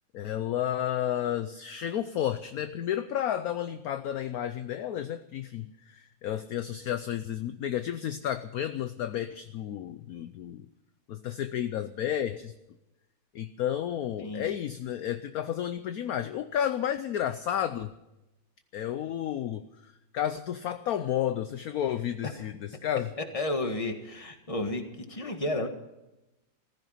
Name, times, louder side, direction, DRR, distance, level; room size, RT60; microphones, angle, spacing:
voice 1, 0.1-10.7 11.1-12.5 13.3-17.9 18.7-23.1, left 10 dB, 65° left, 11 dB, 1.0 m, -32 dB
voice 2, 23.2-25.7, left 2 dB, 20° left, 6 dB, 1.6 m, -32 dB
15.5 x 15.0 x 5.7 m, 0.96 s
omnidirectional pair, 2.0 m